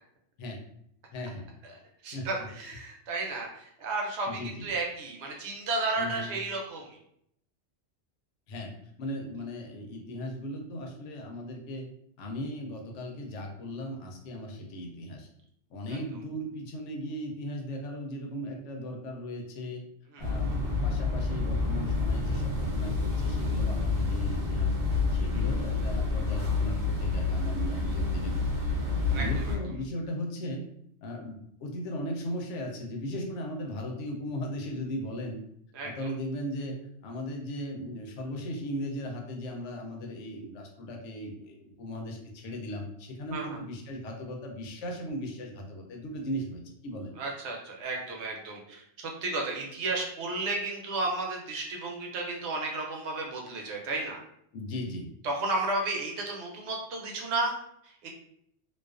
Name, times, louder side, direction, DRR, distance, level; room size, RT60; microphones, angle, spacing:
voice 1, 1.1-1.4 2.1-2.3 4.3-4.7 6.0-6.3 8.5-8.7 9.0-11.9 12.2-15.3 15.7-19.8 20.2-24.8 25.1-28.6 29.1-30.6 31.0-35.4 35.8-36.8 37.0-47.1 54.5-55.1, left 1 dB, 85° left, 2 dB, 0.9 m, -37 dB
voice 2, 1.6-7.0 15.9-16.0 20.1-20.3 25.3-25.4 29.1-29.6 35.7-36.1 43.3-43.6 47.2-54.2 55.2-58.1, right 2 dB, 75° right, 0 dB, 0.9 m, -33 dB
sound 1, 20.2-29.6, left 3 dB, 55° right, 0.5 m, -28 dB
2.3 x 2.2 x 2.3 m, 0.72 s
omnidirectional pair, 1.2 m